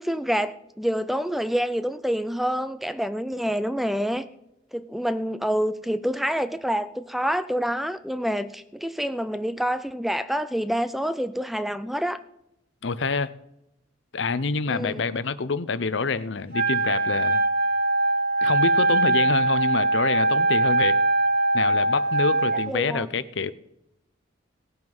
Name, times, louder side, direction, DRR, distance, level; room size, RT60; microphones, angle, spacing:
voice 1, 0.0-4.2 4.7-12.2 14.7-15.0 22.7-23.1, equal, ahead, 12 dB, 0.4 m, -27 dB
voice 2, 12.8-13.3 14.1-17.4 18.4-21.0 21.5-23.5, left 4 dB, 65° left, 16 dB, 0.6 m, -27 dB
Wind instrument woodwind instrument, 16.5-22.7, right 2 dB, 50° right, 2.3 m, -22 dB
17.5 x 7.8 x 5.5 m, 0.84 s
head